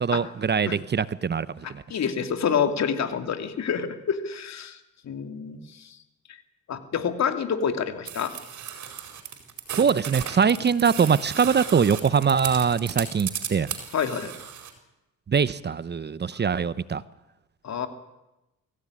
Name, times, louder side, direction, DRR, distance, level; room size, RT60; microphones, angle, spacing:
voice 1, 0.0-1.5 1.7-1.8 9.7-13.7 15.3-17.0, right 6 dB, 35° right, 16 dB, 0.9 m, -22 dB
voice 2, 1.6-6.0 6.7-8.3 13.9-14.3 17.6-17.9, left 7 dB, 60° left, 7 dB, 2.9 m, -28 dB
sound 1, 8.1-14.7, right 9 dB, 70° right, 4.5 m, -35 dB
24.5 x 16.5 x 9.9 m, 0.97 s
cardioid pair, 90°, 30 cm